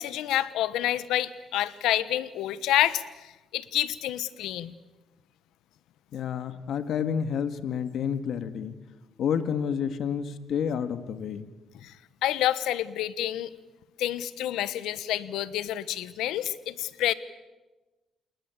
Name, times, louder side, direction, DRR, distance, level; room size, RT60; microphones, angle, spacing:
voice 1, 0.0-4.7 11.8-11.9 12.2-13.5 14.0-17.1, left 13 dB, 90° left, 16 dB, 1.2 m, -28 dB
voice 2, 6.1-8.7 9.2-11.5, left 7 dB, 70° left, 11 dB, 1.8 m, -29 dB
28.5 x 20.0 x 8.4 m, 1.1 s
cardioid pair, 90°, 0 cm